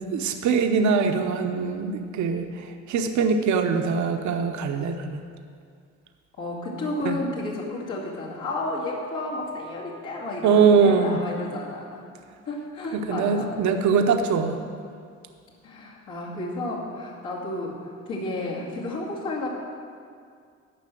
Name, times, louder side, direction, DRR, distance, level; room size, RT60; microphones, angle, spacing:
voice 1, 0.0-5.2 7.0-7.2 10.4-11.2 12.9-14.6, right 5 dB, 70° right, 5 dB, 0.8 m, -22 dB
voice 2, 6.4-12.0 12.5-13.5 15.6-19.5, left 2 dB, 80° left, -6 dB, 2.4 m, -32 dB
11.0 x 5.6 x 7.6 m, 2.2 s
cardioid pair, 90°, 30 cm